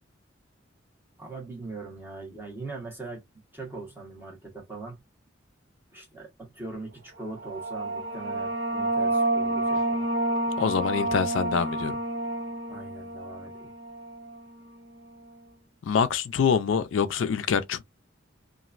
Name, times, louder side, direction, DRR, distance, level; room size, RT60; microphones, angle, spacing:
voice 1, 1.2-3.2 3.5-5.0 5.9-10.0 12.7-13.7, right 3 dB, 10° right, 1.3 m, -41 dB
sound 1, 7.2-14.5, right 2 dB, 75° right, 0.6 m, -29 dB
voice 2, 10.6-12.0 15.8-17.8, left 6 dB, 80° left, 0.4 m, -25 dB
3.0 x 2.5 x 2.4 m
head